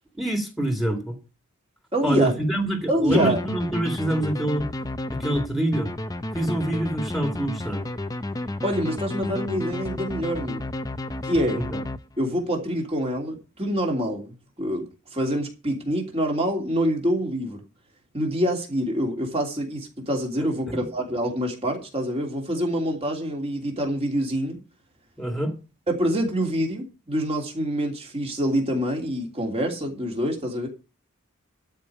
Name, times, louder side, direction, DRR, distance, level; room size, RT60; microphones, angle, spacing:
voice 1, 0.1-1.2 2.0-4.7 5.1-5.9 6.3-7.8 11.6-11.8 20.4-20.8 25.2-25.5, right 1 dB, ahead, 2.2 m, -26 dB
voice 2, 1.9-2.3 2.9-3.4 8.6-10.6 11.2-11.6 12.2-17.6 18.1-24.6 25.9-30.7, equal, 25° right, 3.1 m, -26 dB
sound 1, 3.1-12.4, left 1 dB, 15° left, 0.5 m, -32 dB
12.5 x 5.2 x 8.5 m
head